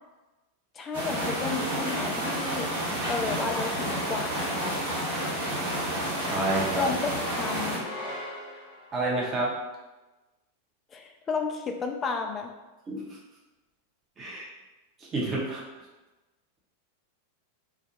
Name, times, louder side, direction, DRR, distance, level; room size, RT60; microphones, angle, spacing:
voice 1, 0.7-4.8 6.7-7.8 10.9-12.5, left 5 dB, 25° left, 3 dB, 0.3 m, -32 dB
sound 1, 0.9-7.8, right 1 dB, 55° right, 1.0 m, -30 dB
voice 2, 6.2-6.9 8.9-9.6 12.9-13.2 14.2-14.5 15.0-15.6, right 2 dB, 25° right, -4 dB, 0.6 m, -29 dB
sound 2, 6.4-9.0, left 1 dB, 50° left, 0.9 m, -41 dB
2.3 x 2.1 x 2.9 m, 1.1 s
figure-of-eight pair, 90°, 0 cm